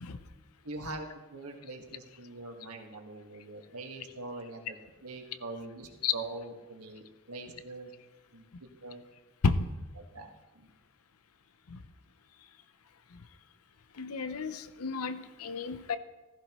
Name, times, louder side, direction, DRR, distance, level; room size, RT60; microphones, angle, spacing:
voice 1, 0.6-7.9 8.3-8.4 8.8-9.0 9.9-10.7, right 2 dB, 90° right, 3 dB, 1.6 m, -43 dB
voice 2, 14.0-16.0, left 4 dB, 80° left, 11 dB, 0.7 m, -31 dB
15.5 x 14.5 x 3.0 m, 1.1 s
head